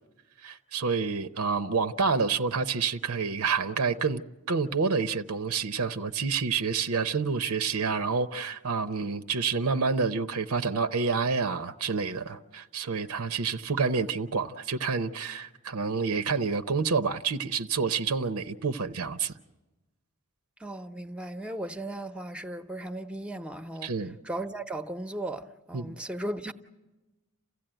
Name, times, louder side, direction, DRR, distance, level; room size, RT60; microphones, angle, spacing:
voice 1, 0.4-4.2 4.5-19.3 23.8-24.2 25.7-26.0, right 5 dB, 85° right, 0.7 m, -28 dB
voice 2, 20.6-23.9 24.2-26.5, right 1 dB, 5° right, 0.8 m, -36 dB
28.5 x 15.5 x 9.0 m
head